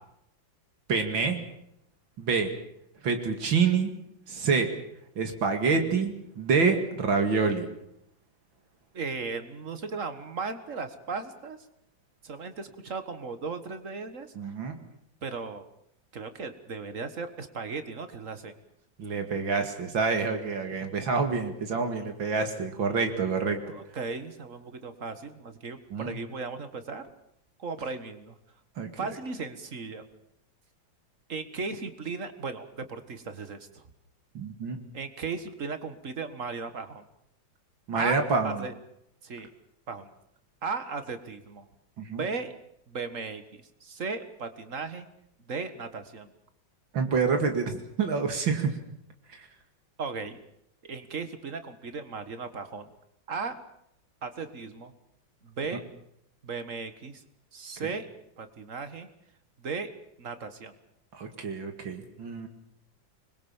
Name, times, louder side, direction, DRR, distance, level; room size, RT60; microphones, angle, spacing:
voice 1, 0.9-1.4 2.2-2.5 3.0-3.9 4.3-4.7 5.2-7.7 14.4-14.8 19.0-23.6 25.9-26.2 28.8-28.9 34.3-34.8 37.9-38.6 42.0-42.2 46.9-48.7 61.2-62.5, right 5 dB, 85° right, 5 dB, 3.0 m, -27 dB
voice 2, 8.9-11.6 12.2-14.3 15.2-15.6 16.1-18.5 23.7-27.0 27.6-28.4 29.0-30.1 31.3-33.8 34.9-37.0 37.9-38.7 39.2-39.5 39.9-40.1 40.6-41.7 42.0-42.5 42.9-45.1 45.4-46.3 50.0-50.4 50.8-52.9 53.3-53.6 54.2-54.9 55.4-55.8 56.4-57.2 57.5-58.1 58.4-59.1 59.6-59.9 60.2-60.7, right 4 dB, 45° right, 10 dB, 2.0 m, -36 dB
25.5 x 21.5 x 7.3 m, 0.77 s
omnidirectional pair, 2.1 m